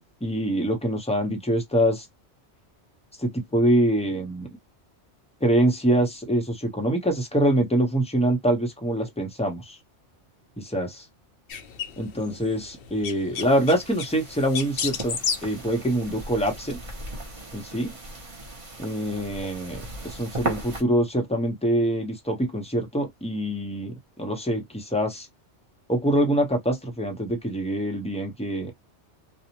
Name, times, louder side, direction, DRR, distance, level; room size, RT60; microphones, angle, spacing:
voice 1, 0.0-2.1 3.2-4.6 5.4-9.8 10.6-11.0 12.0-16.8 17.5-17.9 18.8-25.3 25.9-28.7, right 1 dB, 5° left, 0.6 m, -25 dB
sound 1, 11.5-16.6, left 7 dB, 60° left, 0.7 m, -34 dB
sound 2, 13.3-20.8, right 2 dB, 30° right, 0.8 m, -37 dB
2.7 x 2.0 x 2.8 m
omnidirectional pair, 1.2 m